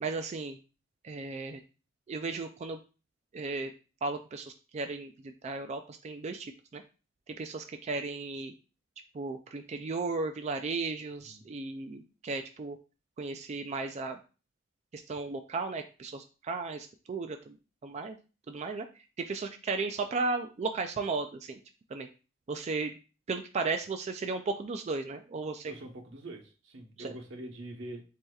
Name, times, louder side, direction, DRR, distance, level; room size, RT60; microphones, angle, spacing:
voice 1, 0.0-0.6 1.0-1.6 2.1-2.8 3.3-3.7 4.0-6.8 7.3-8.5 9.1-12.8 13.2-14.2 14.9-17.6 17.8-18.2 18.5-18.9 19.2-21.6 21.9-22.1 22.5-23.0 23.3-25.7 27.0-27.2, right 3 dB, 35° right, 6 dB, 0.3 m, -35 dB
voice 2, 25.7-28.0, right 1 dB, 80° right, 2 dB, 1.0 m, -44 dB
7.6 x 2.8 x 2.3 m, 0.34 s
head